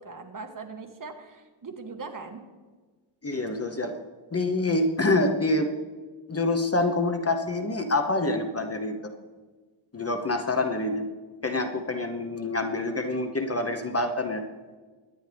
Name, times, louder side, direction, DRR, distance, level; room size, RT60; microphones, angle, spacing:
voice 1, 0.0-2.4, right 4 dB, 40° right, 4 dB, 1.5 m, -40 dB
voice 2, 3.2-4.0 4.3-5.7 6.3-8.9 9.9-11.0 11.4-14.4, left 2 dB, 30° left, 6 dB, 1.0 m, -26 dB
23.0 x 9.9 x 3.4 m, 1.4 s
wide cardioid pair, 130°, 49 cm